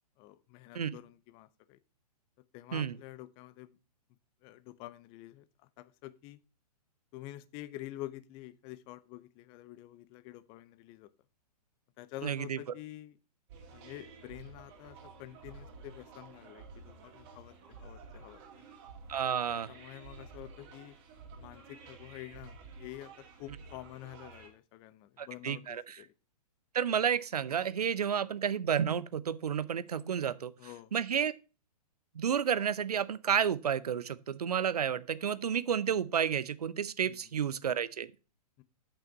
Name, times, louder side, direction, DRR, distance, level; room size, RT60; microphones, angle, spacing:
voice 1, 0.2-1.8 2.5-3.8 4.4-5.5 5.8-6.4 7.1-11.1 12.0-13.2 13.7-18.4 19.5-20.9 21.4-26.1 30.6-30.9 37.0-37.3 38.6-38.7, left 15 dB, 25° left, 0.5 m, -48 dB
voice 2, 12.2-12.6 19.1-19.7 25.2-26.0 26.7-30.5 30.9-31.3 32.1-38.1, right 8 dB, 65° right, 0.6 m, -31 dB
sound 1, 13.5-24.5, right 4 dB, 35° right, 2.3 m, -52 dB
6.9 x 5.7 x 6.6 m
figure-of-eight pair, 115°, 21 cm